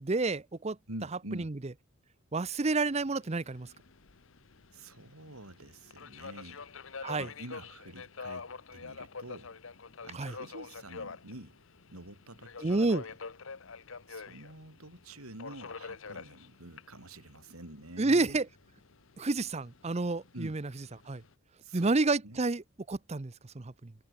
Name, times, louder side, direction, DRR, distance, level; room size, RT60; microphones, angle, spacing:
voice 1, 0.0-0.8 1.3-1.6 2.3-3.7 7.0-7.3 10.1-10.4 12.6-13.0 18.0-18.5 19.2-20.7 21.1-21.2 21.7-23.9, right 3 dB, 30° right, 0.6 m, -30 dB
voice 2, 0.9-1.5 4.7-6.6 7.2-9.5 10.0-11.6 11.9-12.9 14.1-18.4 20.3-20.6 21.6-21.9 22.2-22.4, right 1 dB, 80° right, 5.5 m, -47 dB
Subway metro underground, 2.9-21.3, left 4 dB, 60° left, 1.0 m, -47 dB
head